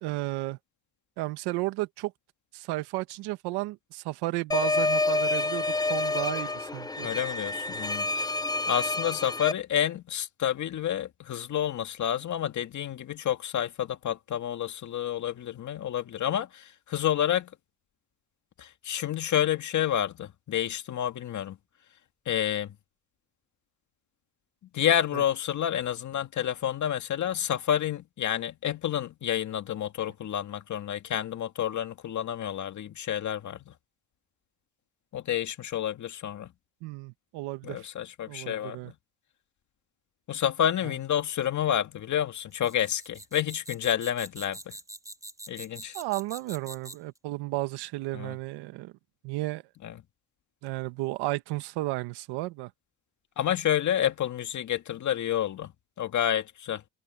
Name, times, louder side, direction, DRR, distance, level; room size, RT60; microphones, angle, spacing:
voice 1, 0.0-0.6 1.2-2.1 2.5-7.1 25.1-25.2 36.8-37.9 38.3-38.9 45.9-48.9 49.2-49.6 50.6-52.7, right 20 dB, 85° right, 1.5 m, -33 dB
sound 1, 4.5-9.5, left 3 dB, 10° left, 0.7 m, -28 dB
voice 2, 7.0-8.3 8.7-17.5 18.6-21.6 22.3-22.7 24.7-33.7 35.1-36.5 37.6-38.9 40.3-44.6 45.5-45.9 48.1-48.3 49.8-49.9 53.4-55.7 56.0-56.8, left 10 dB, 50° left, 2.1 m, -29 dB
sound 2, 42.5-47.2, right 1 dB, 10° right, 3.1 m, -44 dB
cardioid pair, 105°, 38 cm